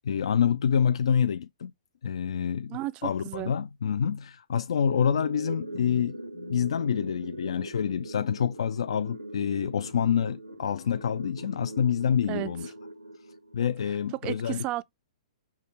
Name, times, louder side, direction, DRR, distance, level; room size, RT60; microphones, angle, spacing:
voice 1, 0.0-1.7 2.0-12.7 13.5-14.6, left 8 dB, 60° left, 0.3 m, -27 dB
voice 2, 2.7-3.5 12.3-12.5 14.2-14.8, right 17 dB, 30° right, 0.4 m, -33 dB
sound 1, 4.8-13.8, right 1 dB, 90° right, 1.2 m, -41 dB
5.8 x 3.2 x 5.6 m
figure-of-eight pair, 115°, 3 cm